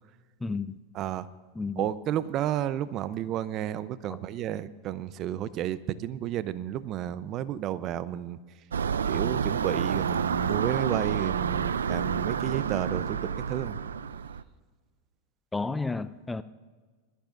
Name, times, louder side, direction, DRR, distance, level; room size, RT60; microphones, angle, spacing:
voice 1, 0.4-0.8 1.6-1.9 4.1-4.2 15.5-16.4, left 3 dB, 10° left, 14 dB, 0.4 m, -32 dB
voice 2, 0.9-1.3 1.8-8.4 9.1-13.8, right 11 dB, 45° right, 16 dB, 0.6 m, -32 dB
sound 1, 8.7-14.4, right 7 dB, 90° right, 0.4 m, -29 dB
21.5 x 13.5 x 2.6 m, 1.5 s
hypercardioid pair, 105°, 0 cm